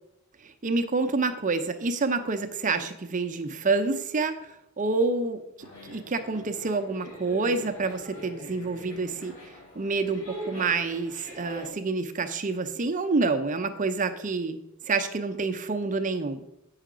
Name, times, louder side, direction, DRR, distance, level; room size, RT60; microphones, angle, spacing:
voice 1, 0.4-14.6 14.8-16.4, right 3 dB, 35° right, 8 dB, 0.6 m, -28 dB
sound 1, 5.6-11.7, equal, 70° left, 3.7 m, -42 dB
8.3 x 5.7 x 5.0 m, 0.85 s
head